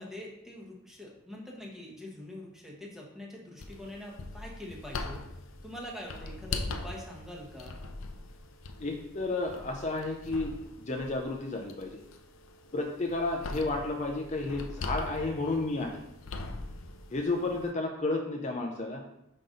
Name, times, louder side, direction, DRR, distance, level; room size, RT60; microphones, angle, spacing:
voice 1, 0.0-5.2 5.6-7.7, left 1 dB, ahead, -2 dB, 1.1 m, -44 dB
sound 1, 3.6-17.7, left 3 dB, 90° left, 0.6 m, -41 dB
voice 2, 8.8-12.0 12.7-16.0 17.1-19.0, left 2 dB, 35° left, 2 dB, 0.6 m, -32 dB
5.8 x 5.3 x 3.8 m, 0.82 s
head